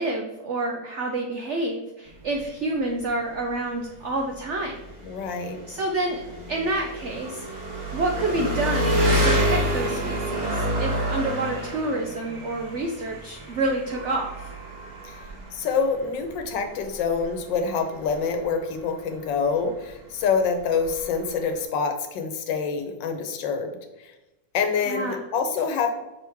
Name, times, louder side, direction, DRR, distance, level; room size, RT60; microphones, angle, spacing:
voice 1, 0.0-4.7 5.7-6.2 6.5-7.6 7.9-14.5 24.8-25.2, right 2 dB, 75° right, 2 dB, 0.6 m, -28 dB
Engine, 2.1-21.6, equal, 30° right, 1.0 m, -29 dB
voice 2, 5.0-5.6 15.0-15.2 15.5-24.1 24.5-25.9, left 5 dB, 85° left, 6 dB, 1.5 m, -26 dB
6.0 x 4.7 x 3.4 m, 1.0 s
omnidirectional pair, 1.9 m